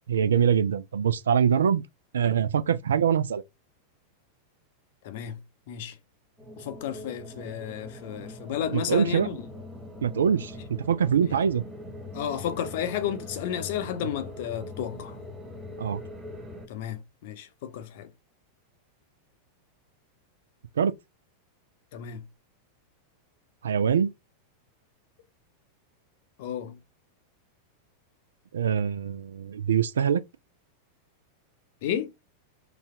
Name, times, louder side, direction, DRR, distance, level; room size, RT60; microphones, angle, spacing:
voice 1, 0.1-1.8 2.1-3.4 8.7-9.3 10.0-10.5 10.8-11.6 15.8-16.0 20.8-21.0 23.6-24.1 28.5-30.2, right 7 dB, 65° right, 0.3 m, -24 dB
voice 2, 5.0-5.4 5.7-6.0 6.6-9.4 12.1-15.2 16.7-18.1 21.9-22.2 26.4-26.8 31.8-32.1, left 10 dB, 50° left, 0.6 m, -32 dB
sound 1, 6.4-16.7, left 1 dB, 10° right, 1.2 m, -42 dB
4.0 x 2.3 x 2.7 m
figure-of-eight pair, 90°, 0 cm